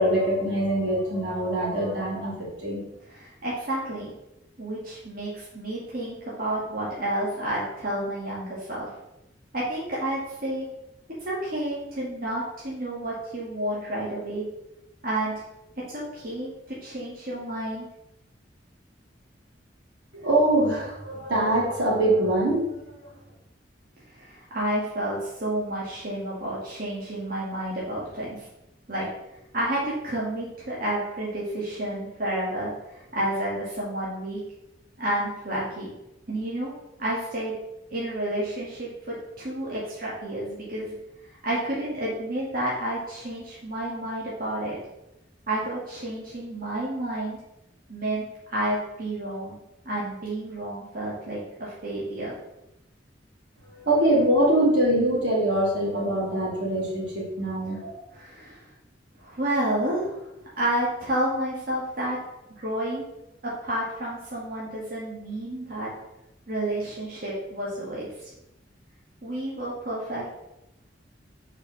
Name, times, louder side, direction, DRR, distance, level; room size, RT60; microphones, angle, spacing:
voice 1, 0.0-2.8 20.1-23.1 53.7-58.0, right 1 dB, 80° right, -4 dB, 2.8 m, -24 dB
voice 2, 3.1-4.1 4.6-8.9 9.5-10.7 11.2-14.4 15.0-15.3 15.9-17.9 24.1-28.4 28.9-29.1 29.5-34.4 35.0-35.9 36.3-36.7 37.0-37.6 37.9-40.9 41.4-44.8 45.5-47.4 47.9-49.6 49.9-52.3 58.2-58.6 59.2-60.2 60.6-62.2 62.6-63.1 63.4-65.9 66.5-68.1 69.2-70.3, right 1 dB, 50° right, -6 dB, 1.9 m, -30 dB
5.1 x 4.8 x 6.0 m, 0.88 s
head